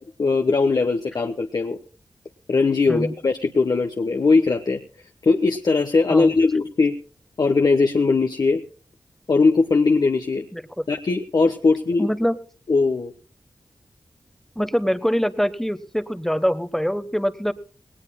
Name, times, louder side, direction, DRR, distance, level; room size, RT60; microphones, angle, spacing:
voice 1, 0.2-1.8 2.5-4.8 5.2-6.9 7.4-8.6 9.3-10.5 10.9-12.1 12.7-13.1, left 4 dB, 60° left, 5 dB, 1.0 m, -20 dB
voice 2, 10.5-10.8 12.0-12.4 14.6-17.5, equal, 5° left, 13 dB, 1.1 m, -24 dB
18.5 x 18.5 x 2.2 m, 0.40 s
cardioid pair, 45°, 8 cm